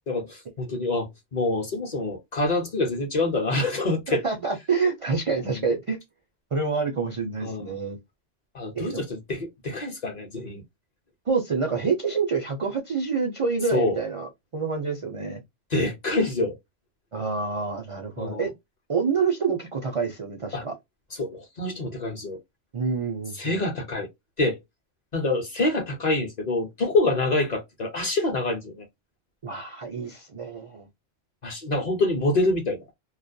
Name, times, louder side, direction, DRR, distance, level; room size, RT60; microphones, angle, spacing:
voice 1, 0.1-4.2 5.4-5.7 7.4-7.7 8.5-10.6 13.7-14.0 15.7-16.6 18.2-18.5 20.5-20.6 21.2-22.4 23.4-24.1 24.4-24.6 25.1-28.8 31.4-32.8, left 2 dB, 45° left, 0.7 m, -26 dB
voice 2, 4.1-6.0 6.5-8.0 8.7-9.0 11.3-15.4 17.1-18.5 18.9-20.8 22.7-23.6 29.4-30.9, right 5 dB, 55° right, 0.3 m, -27 dB
2.3 x 2.2 x 2.5 m
omnidirectional pair, 1.2 m